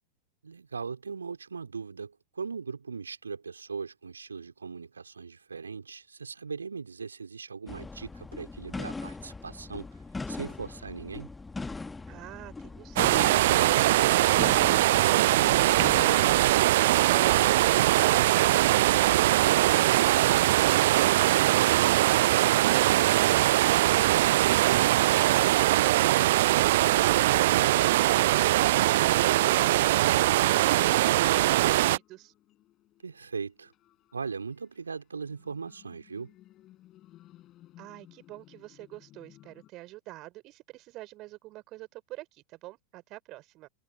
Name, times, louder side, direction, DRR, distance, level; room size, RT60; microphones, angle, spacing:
voice 1, 0.4-11.3 22.3-22.9 33.0-33.7 34.1-36.3, right 5 dB, 75° right, 3.8 m, -39 dB
sound 1, 7.7-16.4, left 3 dB, 10° left, 2.0 m, -40 dB
sound 2, 13.0-32.0, right 16 dB, 55° right, 0.4 m, -22 dB
sound 3, 29.0-39.7, left 14 dB, 35° left, 6.7 m, -58 dB
voice 2, 37.8-43.7, right 18 dB, 40° right, 5.8 m, -45 dB
figure-of-eight pair, 90°, 0 cm